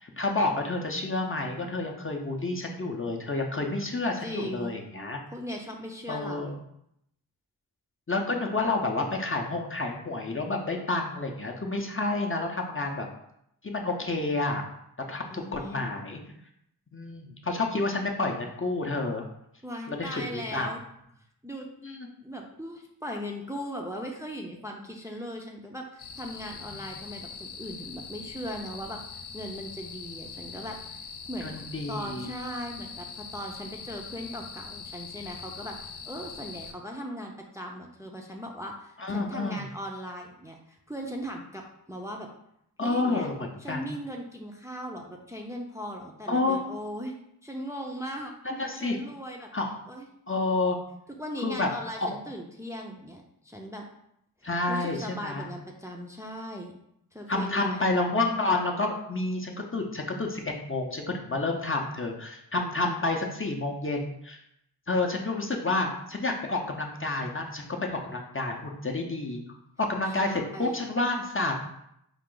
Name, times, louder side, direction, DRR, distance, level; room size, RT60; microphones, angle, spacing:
voice 1, 0.0-5.2 6.1-6.6 8.1-13.1 13.6-14.6 15.1-16.2 16.9-19.2 19.9-20.7 21.8-22.1 26.5-26.8 31.4-32.3 39.0-39.6 42.8-43.8 46.3-46.6 48.4-49.0 49.5-49.7 50.3-50.8 51.4-51.7 52.0-52.1 54.4-55.5 57.3-64.4 64.9-69.4 69.8-71.6, left 2 dB, 30° left, 1 dB, 0.7 m, -29 dB
voice 2, 4.2-4.8 5.3-6.6 15.3-15.8 19.6-20.8 21.4-21.7 22.2-42.3 42.8-43.3 43.6-47.1 47.4-48.4 48.7-49.5 49.9-50.1 51.1-53.8 54.7-56.7 57.1-57.8 70.0-70.8, equal, 10° right, 0 dB, 0.6 m, -38 dB
sound 1, 26.0-36.7, left 5 dB, 80° left, 0.5 m, -42 dB
4.8 x 2.5 x 3.8 m, 0.77 s
wide cardioid pair, 45°, 40 cm